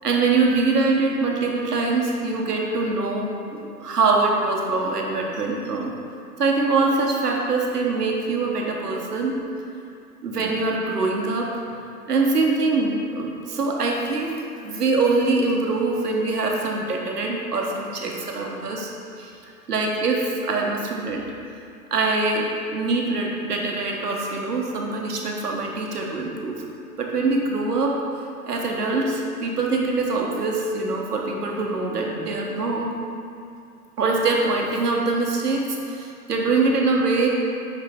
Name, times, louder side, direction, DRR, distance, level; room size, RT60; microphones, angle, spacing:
voice 1, 0.0-5.9 6.4-9.4 10.2-11.5 12.1-18.9 19.2-19.3 19.7-21.2 21.9-22.5 22.7-26.6 27.0-27.9 28.5-32.9 34.0-37.3, right 3 dB, 75° right, 0 dB, 1.1 m, -23 dB
6.0 x 5.6 x 3.5 m, 2.5 s
figure-of-eight pair, 105°, 47 cm